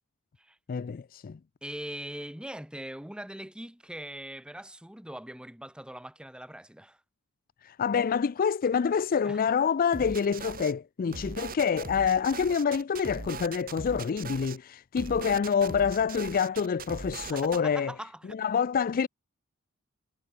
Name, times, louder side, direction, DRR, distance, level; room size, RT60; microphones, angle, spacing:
voice 1, 0.7-1.4 7.6-17.9 18.3-19.1, left 6 dB, 40° left, 0.4 m, -27 dB
voice 2, 1.6-7.0 9.3-9.4 17.4-18.3, right 1 dB, 5° right, 1.2 m, -41 dB
sound 1, 9.9-10.7 11.1-14.6 15.0-17.6, right 4 dB, 40° right, 1.7 m, -40 dB
head